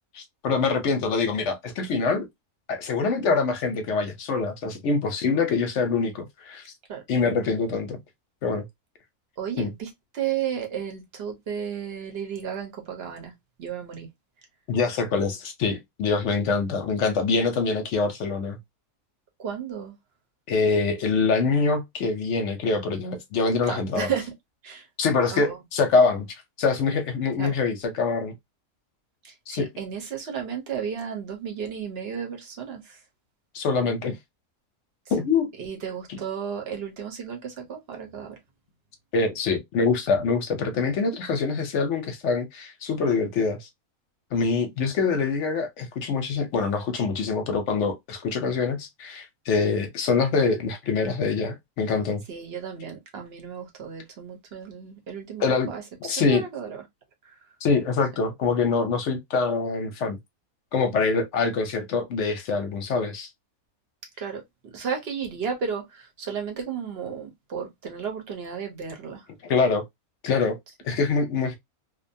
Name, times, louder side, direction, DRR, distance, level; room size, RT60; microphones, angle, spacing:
voice 1, 0.1-2.3 2.7-6.6 7.1-8.0 8.4-8.7 9.6-9.7 14.7-18.6 20.5-24.1 25.0-26.3 26.6-28.3 29.5-29.7 33.5-34.2 35.1-35.5 36.1-36.2 39.1-43.7 44.3-52.2 55.4-55.7 56.0-56.4 57.6-60.2 60.7-63.3 69.4-69.8 70.2-70.6 70.8-71.6, left 4 dB, 65° left, 0.8 m, -24 dB
voice 2, 9.4-9.9 10.1-13.3 13.6-14.1 19.4-19.9 23.7-24.3 24.6-24.8 25.3-25.6 27.4-27.5 29.2-32.9 35.6-38.3 52.3-56.8 64.2-64.4 64.7-69.2, right 7 dB, 50° right, 0.9 m, -33 dB
2.6 x 2.2 x 2.5 m
omnidirectional pair, 1.5 m